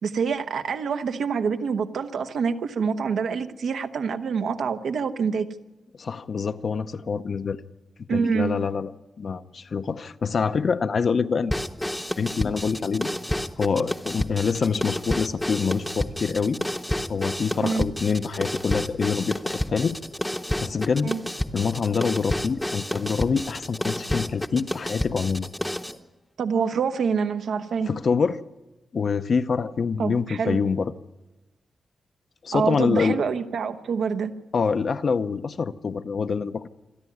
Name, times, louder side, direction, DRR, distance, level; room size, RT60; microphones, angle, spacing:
voice 1, 0.0-5.5 8.1-8.6 17.6-17.9 21.0-21.2 26.4-27.9 30.0-30.6 32.5-34.3, right 6 dB, 90° right, 7 dB, 1.1 m, -26 dB
voice 2, 6.0-7.6 8.1-8.9 9.2-11.6 12.2-13.1 13.6-16.6 17.1-20.0 20.6-21.2 21.5-25.5 27.9-28.4 28.9-30.9 32.4-33.2 34.5-36.7, left 5 dB, 50° left, 11 dB, 0.7 m, -25 dB
sound 1, 11.5-26.0, left 1 dB, 5° left, 0.8 m, -30 dB
27.5 x 11.0 x 9.4 m, 1.1 s
wide cardioid pair, 160°, 0 cm